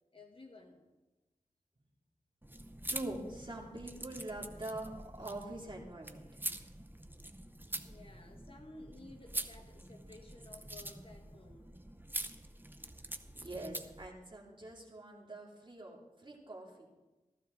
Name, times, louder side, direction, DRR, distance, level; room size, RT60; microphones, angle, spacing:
voice 1, 0.1-0.8 7.8-11.7, left 2 dB, 40° left, 1 dB, 1.6 m, -55 dB
sound 1, 2.4-14.1, right 1 dB, 15° right, 0.8 m, -45 dB
voice 2, 2.9-6.4 13.4-16.9, right 2 dB, 35° right, -2 dB, 2.7 m, -44 dB
15.0 x 14.0 x 3.9 m, 1.1 s
wide cardioid pair, 65°, 14 cm